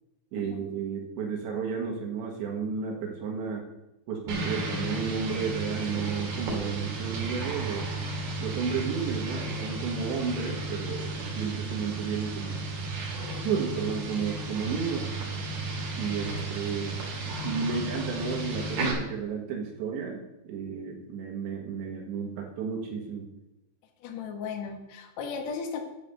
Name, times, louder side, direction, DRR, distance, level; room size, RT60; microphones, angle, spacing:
voice 1, 0.3-3.7 4.1-7.9 8.4-12.7 13.5-15.1 15.9-17.0 17.4-23.3, right 6 dB, 80° right, 0 dB, 3.8 m, -32 dB
sound 1, 4.3-18.9, right 2 dB, 55° right, 3.7 m, -33 dB
voice 2, 24.0-25.8, left 5 dB, 65° left, 3 dB, 1.8 m, -36 dB
10.5 x 7.2 x 6.7 m, 0.91 s
omnidirectional pair, 5.1 m